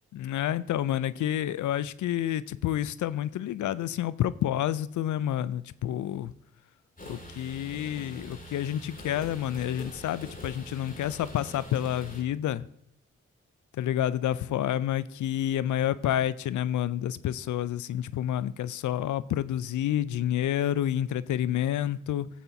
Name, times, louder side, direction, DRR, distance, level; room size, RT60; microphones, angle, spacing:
voice 1, 0.1-6.3 7.1-12.7 13.7-22.3, left 11 dB, 70° left, 0.5 m, -29 dB
sound 1, 7.0-12.2, equal, 25° left, 2.7 m, -44 dB
14.0 x 8.0 x 2.7 m
supercardioid pair, 40°, 30 cm